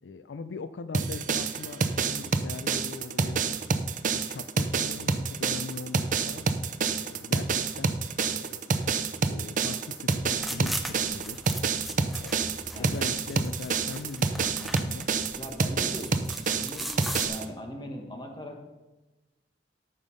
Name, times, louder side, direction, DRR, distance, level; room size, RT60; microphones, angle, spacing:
voice 1, 0.0-3.6 4.1-6.5 7.0-7.9 8.3-9.0 9.3-11.4 12.2-15.1, left 4 dB, 80° left, 12 dB, 0.4 m, -41 dB
sound 1, 0.9-17.4, right 4 dB, 45° right, 0.6 m, -28 dB
sound 2, 10.3-17.3, equal, ahead, 0.7 m, -39 dB
voice 2, 12.7-13.0 15.4-16.9 17.3-18.7, equal, 25° left, 3 dB, 1.5 m, -40 dB
13.5 x 5.4 x 5.3 m, 1.1 s
head